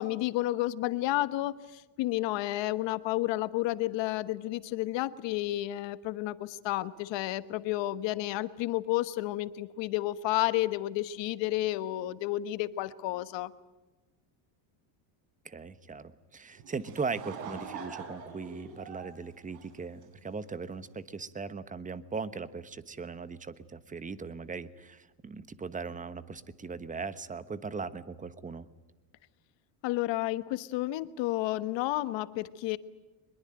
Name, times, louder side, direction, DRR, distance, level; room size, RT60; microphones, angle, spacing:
voice 1, 0.0-13.5 29.8-32.8, left 16 dB, 60° left, 14 dB, 1.3 m, -31 dB
voice 2, 15.4-28.7, right 4 dB, 15° right, 14 dB, 1.2 m, -39 dB
Laughter / Crowd, 16.6-20.3, right 5 dB, 85° right, 4.7 m, -44 dB
24.0 x 21.5 x 9.0 m, 1.1 s
cardioid pair, 135°, 50 cm